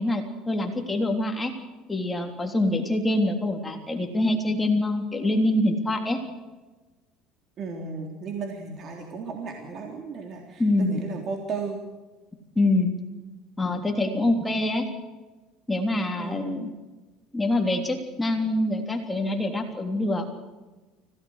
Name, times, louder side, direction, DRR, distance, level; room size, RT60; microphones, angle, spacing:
voice 1, 0.0-1.5 1.9-6.2 10.6-11.0 12.6-12.9 13.6-14.9 15.7-16.7 17.3-20.3, left 1 dB, 10° left, 3 dB, 3.4 m, -25 dB
voice 2, 7.6-11.8 16.2-16.6, right 4 dB, 45° right, 1 dB, 3.7 m, -35 dB
25.0 x 17.0 x 6.5 m, 1.2 s
supercardioid pair, 115°, 0 cm